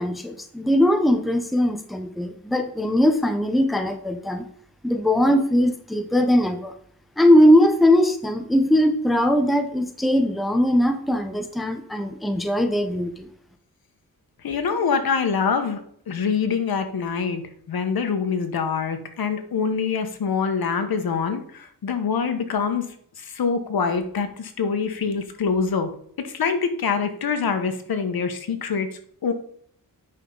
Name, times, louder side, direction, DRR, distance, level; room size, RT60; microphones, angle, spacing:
voice 1, 0.0-4.5 4.8-6.7 7.2-13.3, equal, ahead, 6 dB, 0.8 m, -20 dB
voice 2, 14.4-15.8 16.1-17.4 17.7-22.8 23.2-25.9 26.2-28.9 29.2-29.3, left 5 dB, 85° left, 7 dB, 1.3 m, -25 dB
9.0 x 5.8 x 3.9 m, 0.63 s
wide cardioid pair, 120°, 35 cm